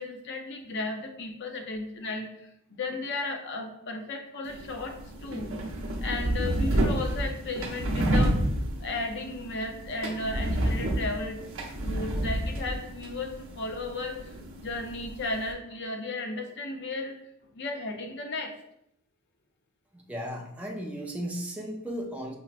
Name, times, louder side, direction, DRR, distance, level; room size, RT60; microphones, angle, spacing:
voice 1, 0.0-2.3 2.7-5.5 6.0-8.4 8.8-11.4 11.8-14.2 14.6-17.2 17.5-18.5, left 2 dB, 55° left, 4 dB, 0.5 m, -34 dB
sound 1, 4.4-15.5, right 1 dB, 60° right, 0.6 m, -30 dB
voice 2, 19.9-22.3, equal, 5° right, -1 dB, 0.4 m, -35 dB
5.5 x 2.1 x 2.4 m, 0.76 s
head